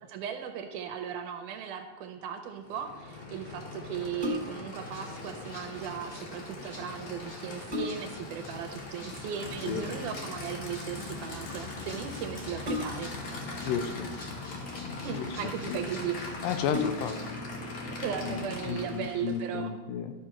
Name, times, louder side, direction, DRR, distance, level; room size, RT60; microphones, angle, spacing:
voice 1, 0.0-13.1 15.0-16.2 18.0-19.7, right 8 dB, 80° right, 6 dB, 2.0 m, -37 dB
Aircraft / Idling, 2.6-19.5, left 3 dB, 55° left, 1.4 m, -40 dB
sound 1, 4.2-4.8 6.8-6.9 7.3-8.3 9.8-10.2 12.6-13.3 14.2-14.9 15.7-15.8 16.1-16.2 16.6-17.3 17.8-17.9, left 3 dB, 25° right, 0.8 m, -35 dB
Rattle (instrument), 4.8-17.4, left 1 dB, 25° left, 2.3 m, -52 dB
voice 2, 13.6-14.1 15.2-15.3 15.7-15.8 16.4-17.2 18.3-20.1, left 8 dB, 85° left, 9 dB, 2.4 m, -32 dB
13.0 x 6.1 x 4.4 m, 1.3 s
omnidirectional pair, 3.9 m